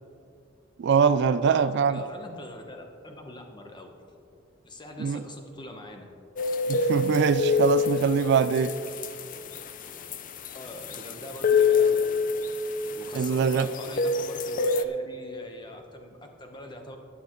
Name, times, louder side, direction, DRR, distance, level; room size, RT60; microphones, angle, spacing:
voice 1, 0.8-2.0 5.0-5.2 6.7-8.7 13.1-13.7, right 6 dB, 60° right, 13 dB, 0.3 m, -23 dB
voice 2, 1.4-3.9 4.6-6.1 10.4-12.0 12.9-17.0, left 1 dB, 25° left, 3 dB, 1.1 m, -42 dB
sound 1, 6.4-14.8, left 4 dB, 45° left, 0.5 m, -27 dB
15.0 x 9.5 x 3.1 m, 2.4 s
head